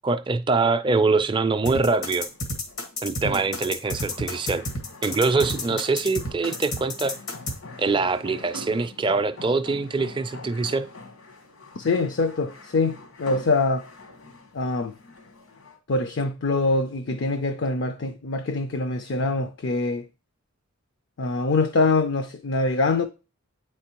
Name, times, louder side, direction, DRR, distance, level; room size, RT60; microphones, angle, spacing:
voice 1, 0.0-2.3 3.0-4.6 5.0-7.1 7.8-10.9, right 3 dB, 20° right, 0.4 m, -24 dB
sound 1, 1.7-7.6, left 1 dB, 90° left, 1.5 m, -30 dB
sound 2, 2.1-15.8, left 2 dB, 75° left, 1.2 m, -44 dB
voice 2, 11.8-13.9 14.5-14.9 15.9-20.1 21.2-23.0, left 3 dB, 55° left, 0.4 m, -24 dB
8.8 x 4.4 x 2.9 m
head